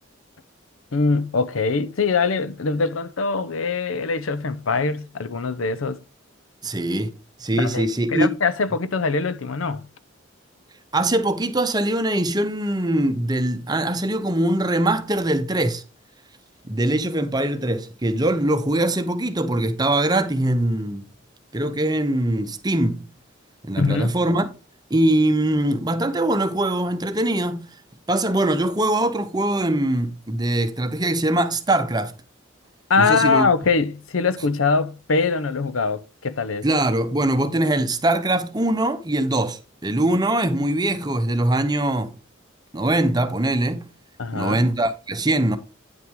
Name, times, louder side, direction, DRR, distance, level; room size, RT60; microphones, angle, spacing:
voice 1, 0.9-6.0 7.5-9.8 23.8-24.1 32.9-36.7 44.2-44.7, left 4 dB, 90° left, 0.7 m, -23 dB
voice 2, 6.6-7.1 7.4-8.3 10.9-15.8 16.7-21.1 21.5-23.1 23.6-24.5 24.9-27.7 28.1-32.1 33.0-33.5 36.6-42.1 42.7-43.9 44.3-45.6, right 1 dB, 20° right, 0.8 m, -22 dB
9.3 x 5.8 x 3.7 m
head